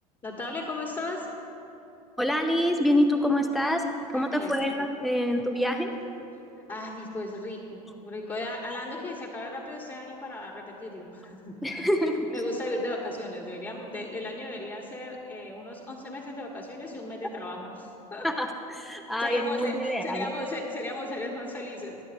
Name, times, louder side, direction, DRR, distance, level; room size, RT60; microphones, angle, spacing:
voice 1, 0.2-1.3 4.1-4.5 6.7-11.5 12.3-18.3 19.2-22.0, left 2 dB, 25° left, -3 dB, 1.6 m, -36 dB
voice 2, 2.2-3.8 4.1-5.9 11.6-12.4 18.2-20.3, equal, ahead, 4 dB, 0.7 m, -26 dB
21.0 x 10.0 x 2.7 m, 2.8 s
hypercardioid pair, 80°, 20 cm